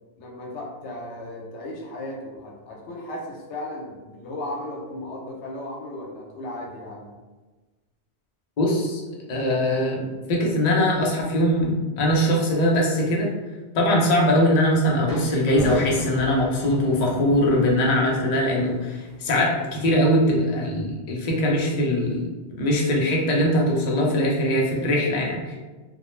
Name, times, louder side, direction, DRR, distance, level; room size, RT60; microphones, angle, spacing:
voice 1, 0.2-7.1, left 1 dB, 85° left, -1 dB, 0.9 m, -35 dB
voice 2, 8.6-9.0 9.3-13.3 13.7-22.3 22.6-25.5, left 1 dB, 50° left, -3 dB, 0.5 m, -21 dB
sound 1, 15.1-20.0, right 1 dB, 5° left, 0.6 m, -37 dB
2.3 x 2.0 x 3.0 m, 1.3 s
omnidirectional pair, 1.2 m